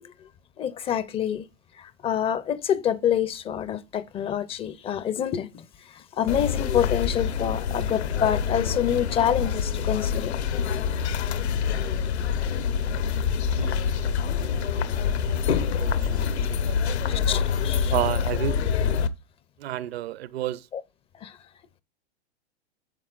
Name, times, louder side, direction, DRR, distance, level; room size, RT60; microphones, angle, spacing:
voice 1, 0.6-1.4 2.0-5.5 6.2-10.3 17.3-17.9 20.7-20.8 21.2-21.3, left 9 dB, 20° left, 0.4 m, -26 dB
sound 1, 6.3-19.1, left 7 dB, 80° left, 1.0 m, -26 dB
voice 2, 13.5-17.2 17.9-18.6 19.6-20.7, right 13 dB, 65° right, 0.7 m, -33 dB
11.0 x 7.2 x 2.4 m
hypercardioid pair, 120°, 33 cm